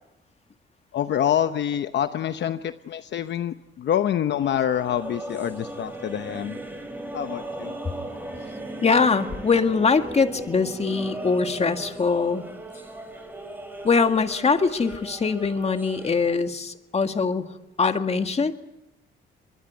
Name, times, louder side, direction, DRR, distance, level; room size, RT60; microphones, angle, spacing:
voice 1, 0.9-6.6 7.1-7.7, left 10 dB, 65° left, 10 dB, 0.9 m, -26 dB
sound 1, 4.4-16.3, right 1 dB, 10° right, 5.5 m, -37 dB
voice 2, 8.8-12.4 13.8-17.5 17.8-18.5, left 4 dB, 30° left, 7 dB, 1.9 m, -22 dB
23.5 x 21.5 x 9.5 m, 0.94 s
cardioid pair, 90°, 20 cm